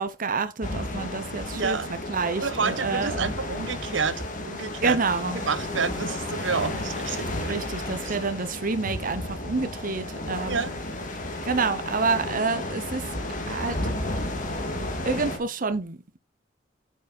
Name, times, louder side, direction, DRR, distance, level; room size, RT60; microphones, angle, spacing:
voice 1, 0.0-1.8 2.1-3.3 4.8-5.4 7.4-10.6 11.4-13.0 13.5-13.8 15.1-16.0, right 4 dB, 45° right, 0.9 m, -28 dB
sound 1, 0.6-15.4, left 1 dB, 45° left, 2.2 m, -32 dB
voice 2, 1.5-1.9 2.4-5.0 5.3-7.5 8.1-8.2 10.5-10.7, right 5 dB, 80° right, 1.1 m, -29 dB
8.1 x 6.2 x 4.1 m
head